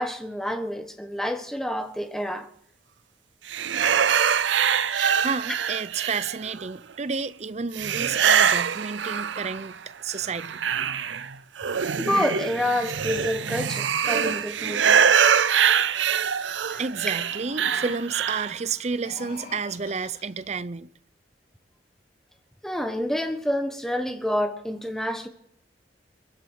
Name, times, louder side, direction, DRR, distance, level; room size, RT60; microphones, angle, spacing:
voice 1, 0.0-2.5 5.0-5.1 12.0-15.1 16.7-16.8 22.6-25.3, left 1 dB, ahead, 1.2 m, -28 dB
sound 1, 3.5-6.6 7.7-9.7 10.1-18.6, right 7 dB, 85° right, 0.6 m, -24 dB
voice 2, 5.2-10.6 16.8-20.9, right 5 dB, 40° right, 0.5 m, -31 dB
sound 2, 17.0-18.3 18.9-20.5, left 3 dB, 50° left, 3.7 m, -44 dB
23.0 x 11.0 x 4.7 m
head